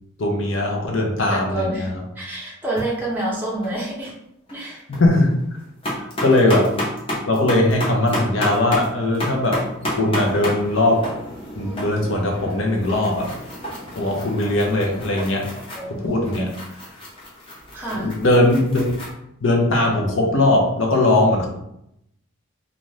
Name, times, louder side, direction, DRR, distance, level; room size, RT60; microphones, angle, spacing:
voice 1, 0.2-2.0 4.9-5.4 6.0-6.8 7.3-9.6 9.9-11.0 11.5-13.3 13.9-15.5 15.9-16.5 17.9-18.9 19.4-21.5, left 1 dB, 60° left, 0 dB, 0.7 m, -20 dB
voice 2, 1.3-1.9 2.2-4.1 4.5-4.8 15.7-16.5 17.7-18.1, right 2 dB, 10° right, -5 dB, 0.5 m, -28 dB
sound 1, 2.6-2.8 3.2-3.7 4.1-4.2 4.5-5.0 5.4-19.1, equal, 25° left, 0.8 m, -31 dB
2.6 x 2.5 x 3.2 m, 0.78 s
head